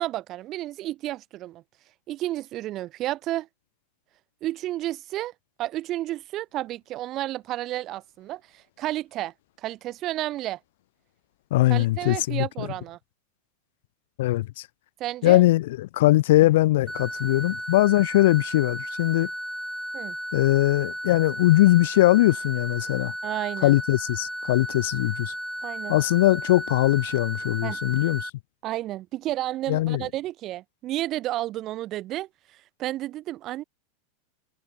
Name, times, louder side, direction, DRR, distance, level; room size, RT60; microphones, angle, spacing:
voice 1, 0.0-1.6 2.1-3.5 4.4-5.3 5.6-10.6 11.7-13.0 15.0-15.4 19.9-20.2 23.2-23.8 25.6-26.0 27.6-27.8 28.6-33.6, right 15 dB, 30° right, 2.3 m, -31 dB
voice 2, 11.5-12.7 14.2-14.7 15.2-19.3 20.3-23.1 23.6-25.3 25.9-28.3 29.7-30.0, left 17 dB, 65° left, 0.5 m, -21 dB
sound 1, 16.9-28.3, equal, ahead, 1.5 m, -34 dB
supercardioid pair, 165°, 0 cm